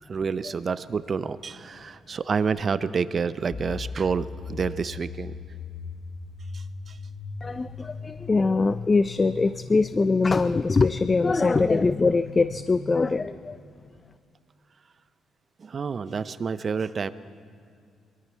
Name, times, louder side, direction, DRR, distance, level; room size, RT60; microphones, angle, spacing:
voice 1, 0.0-5.3 6.5-7.0 15.6-17.1, right 5 dB, 40° right, 15 dB, 0.5 m, -29 dB
sound 1, 3.5-13.3, left 5 dB, 50° left, 0.8 m, -39 dB
voice 2, 7.4-13.6, left 3 dB, 30° left, 13 dB, 0.3 m, -23 dB
22.0 x 13.5 x 4.6 m, 2.4 s
cardioid pair, 90°, 0 cm